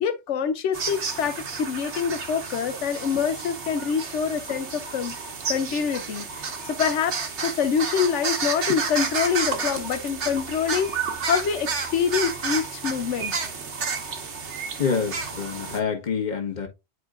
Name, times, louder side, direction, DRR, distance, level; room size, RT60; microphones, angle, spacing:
voice 1, 0.0-5.2 5.5-7.2 7.4-13.3, left 7 dB, 90° left, 1.0 m, -26 dB
sound 1, 0.7-15.8, right 5 dB, 80° right, 1.4 m, -31 dB
voice 2, 14.8-16.7, left 6 dB, 40° left, 1.4 m, -27 dB
9.4 x 4.4 x 2.4 m
omnidirectional pair, 1.2 m